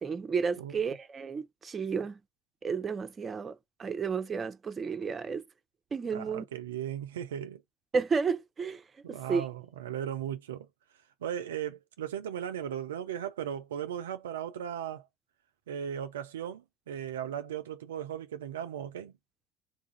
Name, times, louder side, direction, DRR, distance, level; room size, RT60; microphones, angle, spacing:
voice 1, 0.0-2.2 2.6-5.4 5.9-6.4 7.9-8.8 9.1-9.4, right 5 dB, 35° right, 0.6 m, -32 dB
voice 2, 6.1-7.6 9.0-10.7 11.2-15.1 15.7-19.1, right 9 dB, 80° right, 0.4 m, -37 dB
3.8 x 2.4 x 3.6 m
hypercardioid pair, 60°, 0 cm